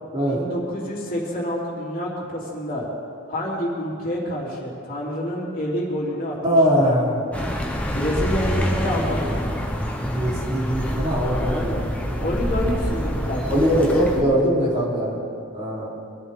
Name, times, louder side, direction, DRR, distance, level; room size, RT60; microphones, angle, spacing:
voice 1, 0.2-2.9 3.3-6.6 7.9-9.4 12.2-14.3, equal, 45° left, -5 dB, 3.4 m, -28 dB
voice 2, 6.4-7.3 10.0-12.4 13.5-15.2 15.5-15.9, equal, 35° right, -6 dB, 3.8 m, -22 dB
Accelerating revving vroom, 7.3-14.2, equal, 5° left, 0.9 m, -26 dB
24.0 x 13.5 x 3.8 m, 2.5 s
head